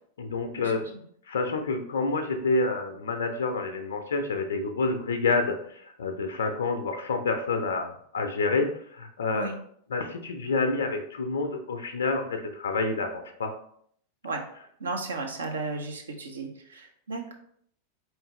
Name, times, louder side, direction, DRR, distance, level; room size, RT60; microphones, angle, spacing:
voice 1, 0.2-0.9 1.3-9.5 9.9-13.5, left 3 dB, 70° left, 6 dB, 0.5 m, -28 dB
voice 2, 14.8-17.4, right 3 dB, 70° right, 2 dB, 0.7 m, -34 dB
4.6 x 3.2 x 3.1 m, 0.64 s
figure-of-eight pair, 90°, 0 cm